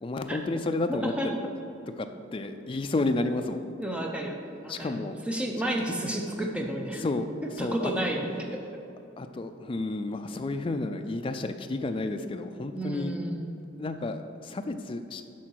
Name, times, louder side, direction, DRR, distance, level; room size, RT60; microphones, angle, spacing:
voice 1, 0.0-1.5 2.0-3.6 4.7-5.2 7.0-7.3 7.6-7.9 9.2-13.2 13.8-15.2, left 2 dB, 25° left, 7 dB, 0.3 m, -31 dB
voice 2, 0.9-1.4 3.8-4.4 4.6-5.0 5.3-7.0 7.6-8.6 12.7-13.6, right 1 dB, 5° right, 1 dB, 0.6 m, -31 dB
8.5 x 5.8 x 4.6 m, 2.7 s
head